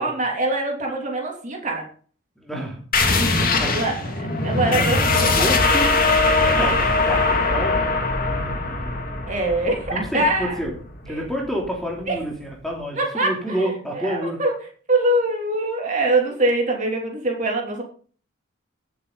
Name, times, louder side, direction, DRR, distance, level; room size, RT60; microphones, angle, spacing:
voice 1, 0.0-1.9 3.6-5.5 9.3-10.6 11.1-11.2 12.1-12.2 13.0-13.7 14.0-14.5 14.9-17.8, right 2 dB, 35° right, 0 dB, 3.0 m, -23 dB
voice 2, 2.4-2.8 3.6-3.8 4.7-5.0 5.3-5.9 6.5-8.0 8.3-8.9 9.9-10.7 11.0-14.4, equal, ahead, -1 dB, 3.2 m, -29 dB
sound 1, 2.9-12.1, left 3 dB, 45° left, 2.5 m, -21 dB
17.5 x 7.9 x 4.0 m, 0.43 s
head